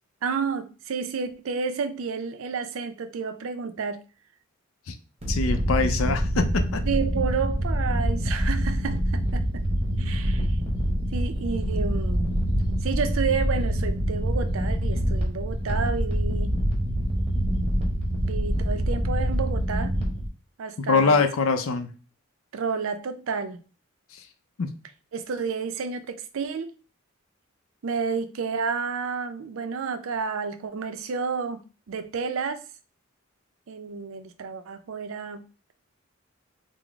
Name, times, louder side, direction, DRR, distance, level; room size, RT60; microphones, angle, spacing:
voice 1, 0.2-4.0 6.9-9.6 10.0-10.5 11.1-12.4 12.8-16.6 18.2-20.0 20.6-21.2 22.5-23.6 25.1-26.7 27.8-32.6 33.7-35.4, right 5 dB, 75° right, 0.4 m, -30 dB
Low Rumble, 5.2-20.3, equal, 30° right, 0.7 m, -25 dB
voice 2, 5.3-6.8 20.9-21.9 24.1-24.3 24.6-24.7, left 4 dB, 80° left, 0.5 m, -24 dB
3.7 x 2.0 x 3.4 m
head